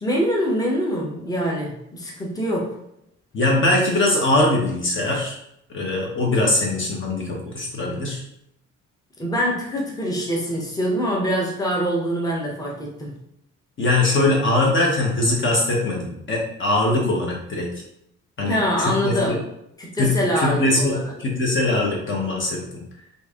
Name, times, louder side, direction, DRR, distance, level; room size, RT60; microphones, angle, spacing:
voice 1, 0.0-2.7 9.2-13.1 18.5-19.4 19.8-21.0, equal, 10° left, -2 dB, 0.9 m, -24 dB
voice 2, 3.3-5.4 5.7-8.2 13.8-17.7 18.4-19.4 20.0-22.8, left 2 dB, 40° left, -2 dB, 0.9 m, -21 dB
3.1 x 2.6 x 3.6 m, 0.77 s
cardioid pair, 90°, 30 cm